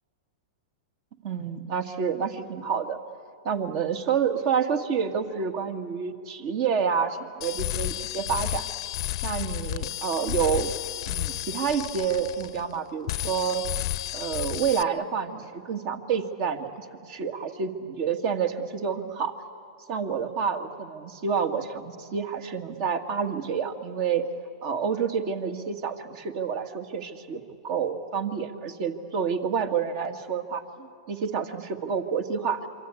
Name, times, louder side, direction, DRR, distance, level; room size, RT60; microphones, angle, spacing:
voice 1, 1.2-3.0 3.4-8.7 9.2-10.7 11.1-13.6 14.1-19.3 19.9-24.3 24.6-32.7, right 6 dB, 50° right, 7 dB, 2.0 m, -28 dB
sound 1, 7.4-12.8 13.1-14.8, left 15 dB, 60° left, 0.7 m, -32 dB
27.0 x 24.0 x 8.5 m, 2.6 s
hypercardioid pair, 125°, 3 cm